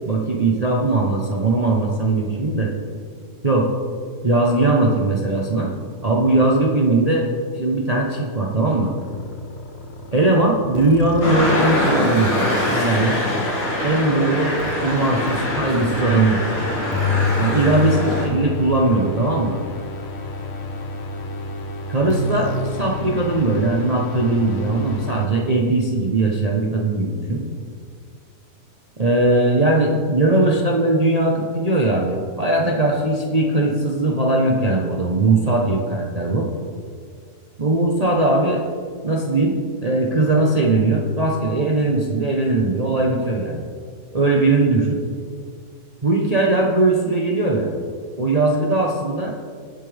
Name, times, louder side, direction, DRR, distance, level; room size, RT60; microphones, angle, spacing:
voice 1, 0.1-2.7 3.4-3.7 4.2-5.8 6.0-7.2 7.5-8.9 10.1-12.3 12.7-13.2 13.8-16.4 17.4-19.6 21.9-27.5 29.0-36.5 37.6-38.6 39.0-43.6 44.1-45.0 46.0-47.7 48.2-49.3, right 2 dB, 30° right, -2 dB, 0.9 m, -19 dB
sound 1, 9.0-25.3, left 2 dB, 50° left, 1.0 m, -30 dB
sound 2, 11.2-18.3, left 1 dB, 75° left, 2.9 m, -23 dB
19.0 x 7.4 x 3.4 m, 2.1 s
omnidirectional pair, 1.7 m